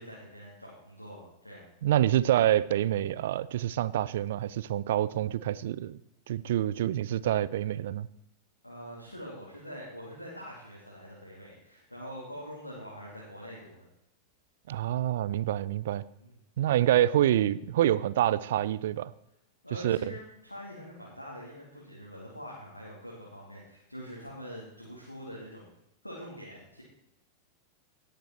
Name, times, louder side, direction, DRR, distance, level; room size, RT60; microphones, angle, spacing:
voice 1, 0.0-1.6 8.6-13.8 16.2-16.4 19.6-25.7 26.0-26.8, equal, 85° left, -4 dB, 2.5 m, -44 dB
voice 2, 1.8-6.0 6.3-8.1 14.7-16.0 16.6-19.1 19.8-20.0, right 12 dB, 55° right, 17 dB, 0.5 m, -27 dB
18.0 x 6.8 x 4.4 m, 0.80 s
figure-of-eight pair, 90°, 0 cm